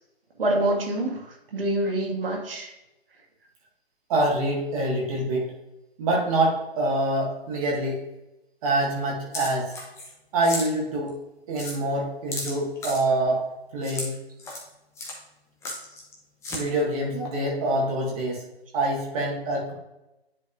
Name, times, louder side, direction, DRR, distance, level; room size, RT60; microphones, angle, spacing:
voice 1, 0.4-2.7, right 1 dB, 60° right, 0 dB, 1.9 m, -26 dB
voice 2, 4.1-5.5 6.0-8.0 8.6-9.7 10.3-11.1 11.5-13.4 13.7-14.2 16.5-18.4 18.7-19.7, right 1 dB, 35° right, -3 dB, 1.8 m, -25 dB
sound 1, 9.3-10.1 10.4-10.7 11.1-11.2 11.6-11.8 12.3-13.0 13.8-14.1 14.4-14.7 15.0-15.2 15.6-16.1 16.4-16.6, left 2 dB, 10° left, 0.9 m, -34 dB
10.0 x 4.0 x 2.5 m, 0.94 s
figure-of-eight pair, 140°, 31 cm